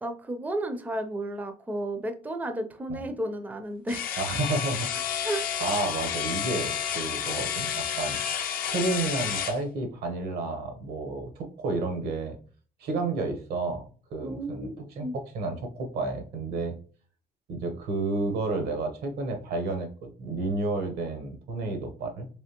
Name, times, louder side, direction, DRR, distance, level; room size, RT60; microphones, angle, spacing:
voice 1, 0.0-4.2 5.2-5.5 14.2-15.1, right 1 dB, 10° right, 7 dB, 0.4 m, -33 dB
sound 1, 3.9-9.6, left 8 dB, 60° left, 0.5 m, -30 dB
voice 2, 4.2-4.9 5.6-8.2 8.6-12.4 12.8-16.7 17.5-22.3, right 3 dB, 75° right, 5 dB, 0.9 m, -31 dB
3.4 x 3.1 x 2.9 m, 0.41 s
cardioid pair, 115°, 16 cm